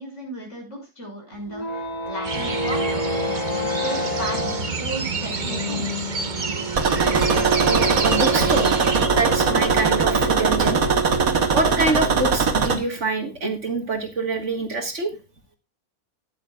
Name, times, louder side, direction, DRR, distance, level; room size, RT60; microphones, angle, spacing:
voice 1, 0.0-6.1, right 1 dB, 50° left, 0 dB, 6.3 m, -35 dB
sound 1, 1.3-12.6, right 2 dB, 25° left, 1.8 m, -28 dB
sound 2, 2.2-9.1, right 4 dB, 35° right, 1.1 m, -28 dB
sound 3, 6.8-12.8, right 5 dB, 70° right, 1.8 m, -21 dB
voice 2, 7.7-8.8 9.2-10.8 11.5-15.2, right 3 dB, 50° right, 6 dB, 2.0 m, -25 dB
13.5 x 10.0 x 2.4 m, 0.27 s
omnidirectional pair, 1.6 m